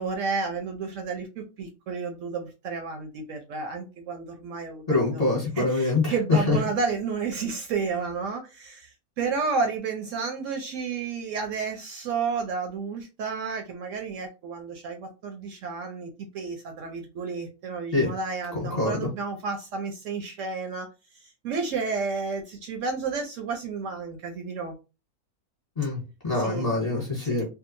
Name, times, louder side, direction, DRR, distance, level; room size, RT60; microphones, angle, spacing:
voice 1, 0.0-5.2 5.6-8.9 9.2-20.9 21.1-24.7 26.3-26.7 27.2-27.4, right 5 dB, 70° right, 4 dB, 0.8 m, -31 dB
voice 2, 4.9-6.1 6.5-6.6 17.9-18.1 18.8-19.1 25.8-27.5, left 3 dB, 30° left, -3 dB, 1.0 m, -25 dB
2.7 x 2.3 x 2.5 m, 0.29 s
omnidirectional pair, 1.5 m